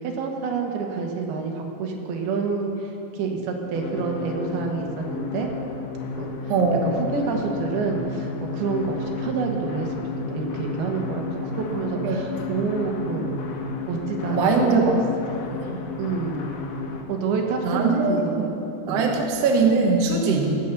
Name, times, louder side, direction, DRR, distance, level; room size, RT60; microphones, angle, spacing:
voice 1, 0.0-5.5 6.2-6.3 6.7-13.5 13.9-15.0 16.0-16.6 17.1-18.5 18.9-19.1 20.4-20.6, right 4 dB, 70° right, 2 dB, 2.9 m, -28 dB
sound 1, 3.7-17.0, left 4 dB, 65° left, 2.2 m, -32 dB
voice 2, 6.5-6.8 12.0-12.2 14.3-14.9 15.6-15.8 17.6-18.4 18.9-20.5, right 4 dB, 90° right, 1 dB, 1.3 m, -21 dB
15.5 x 7.1 x 6.7 m, 2.9 s
omnidirectional pair, 4.9 m